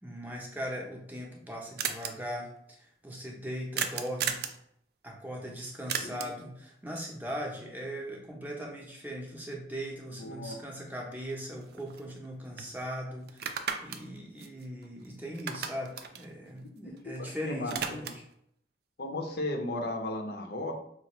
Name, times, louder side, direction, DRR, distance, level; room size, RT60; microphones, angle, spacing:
voice 1, 0.0-4.4 5.0-18.2, equal, 10° right, -1 dB, 0.6 m, -39 dB
sound 1, 1.1-1.2 1.4-1.5 1.8-2.1 3.8-4.6 5.9-6.4 10.6-10.7 11.1-12.3 12.6-12.7 13.3-15.1 15.3-17.2 17.5-18.3, right 7 dB, 55° right, 0.4 m, -35 dB
voice 2, 10.2-10.6 16.6-18.0 19.0-20.7, left 1 dB, 55° left, 3 dB, 0.6 m, -36 dB
5.1 x 2.4 x 3.0 m, 0.71 s
head